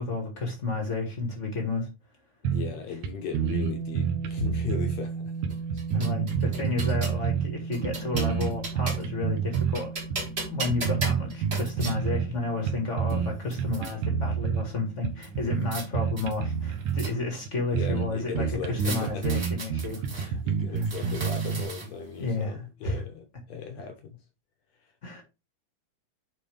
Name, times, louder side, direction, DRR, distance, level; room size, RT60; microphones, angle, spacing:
voice 1, 0.0-1.9 5.9-9.9 10.5-20.4 20.7-20.9 22.2-23.0 25.0-25.2, left 3 dB, 40° left, 1.0 m, -32 dB
voice 2, 2.4-5.3 5.7-5.8 17.1-17.2 17.7-19.4 20.1-24.2, left 7 dB, 70° left, 1.7 m, -37 dB
sound 1, 2.4-2.8 3.0-3.1 3.3-5.0 5.4-7.5 7.8-9.8 10.1-10.3 10.7-12.3 12.7-13.3 13.6-14.6 15.0-17.1 17.5-17.6 17.7-18.1 18.3-21.6, right 7 dB, 65° right, 2.0 m, -28 dB
sound 2, 3.4-19.4, right 4 dB, 90° right, 2.8 m, -40 dB
sound 3, 5.5-7.2 7.7-9.2 9.5-12.0 12.7-12.8 13.1-13.9 15.2-15.9 16.2-17.4 18.8-20.3 20.8-22.1, right 2 dB, 35° right, 0.9 m, -38 dB
9.0 x 3.8 x 3.3 m
omnidirectional pair, 4.1 m